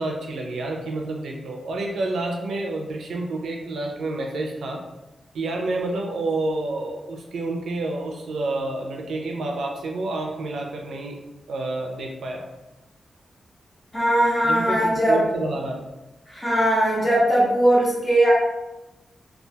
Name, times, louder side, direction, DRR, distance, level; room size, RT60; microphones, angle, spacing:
voice 1, 0.0-4.8 5.3-11.2 11.5-12.5 14.4-15.8, right 2 dB, 90° right, 1 dB, 0.4 m, -29 dB
voice 2, 13.9-15.2 16.3-18.3, right 1 dB, 15° left, -8 dB, 0.9 m, -19 dB
2.3 x 2.1 x 2.7 m, 0.99 s
wide cardioid pair, 150°, 0 cm